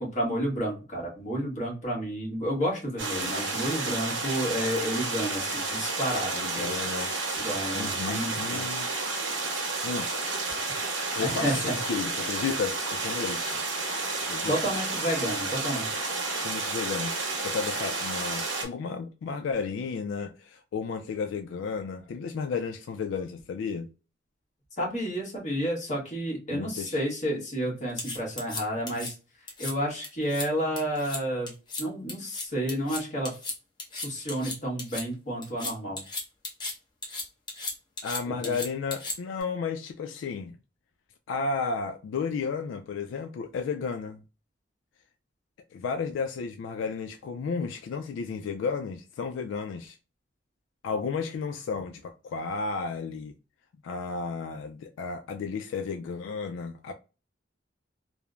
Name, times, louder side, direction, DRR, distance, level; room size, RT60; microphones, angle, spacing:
voice 1, 0.0-6.8 7.4-8.6 11.2-11.8 14.5-15.9 24.8-31.5 31.8-33.4 34.0-36.0 38.3-38.5, equal, 40° left, 1.2 m, -31 dB
sound 1, 3.0-18.6, right 3 dB, 85° right, 1.0 m, -31 dB
voice 2, 6.3-7.1 7.7-8.9 9.8-10.3 11.1-13.6 14.3-14.6 16.4-23.9 26.5-27.0 38.0-40.6 41.3-44.2 45.7-50.0 50.8-53.3 53.8-56.9, left 5 dB, 85° left, 0.3 m, -33 dB
sound 2, 28.0-29.1 29.5-29.7 30.0-30.5 30.8-31.2 31.5-31.8 32.1-35.0 35.4-36.7 37.0-39.4, left 3 dB, 25° left, 0.8 m, -35 dB
3.1 x 2.0 x 2.3 m
head